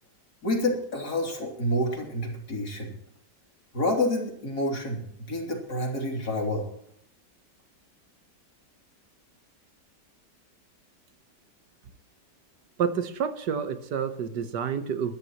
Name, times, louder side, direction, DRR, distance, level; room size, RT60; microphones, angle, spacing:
voice 1, 0.4-2.9 3.7-6.7, left 1 dB, 65° left, 0 dB, 3.6 m, -28 dB
voice 2, 12.8-15.2, right 7 dB, 75° right, 10 dB, 1.7 m, -29 dB
22.5 x 13.0 x 3.0 m, 0.71 s
omnidirectional pair, 1.9 m